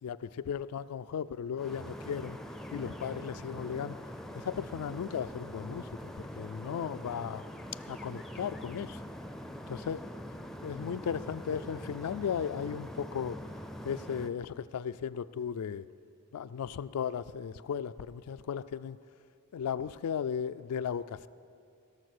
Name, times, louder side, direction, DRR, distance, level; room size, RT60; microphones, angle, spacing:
voice 1, 0.0-2.4 2.7-4.0 4.3-5.9 6.2-7.4 7.9-9.0 9.7-10.0 10.6-13.4 13.8-15.8 16.3-19.0 19.5-21.3, left 7 dB, 85° left, 15 dB, 0.4 m, -36 dB
sound 1, 1.6-14.3, equal, ahead, 0.4 m, -43 dB
16.5 x 6.7 x 6.6 m, 2.4 s
head